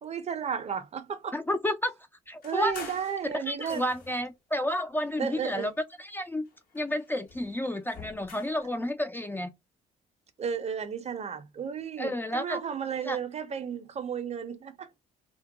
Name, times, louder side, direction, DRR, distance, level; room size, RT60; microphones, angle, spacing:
voice 1, 0.0-1.4 2.4-3.8 5.2-5.7 10.4-14.9, right 7 dB, 40° right, 0.5 m, -33 dB
voice 2, 1.3-1.9 2.3-2.7 3.5-5.7 6.0-6.4 6.7-9.5 12.0-12.6 13.0-13.2, left 1 dB, 10° left, 0.3 m, -31 dB
sound 1, 2.4-4.3 5.0-6.1 6.5-8.7, left 5 dB, 60° left, 1.0 m, -48 dB
2.2 x 2.1 x 2.8 m
supercardioid pair, 65°, 17 cm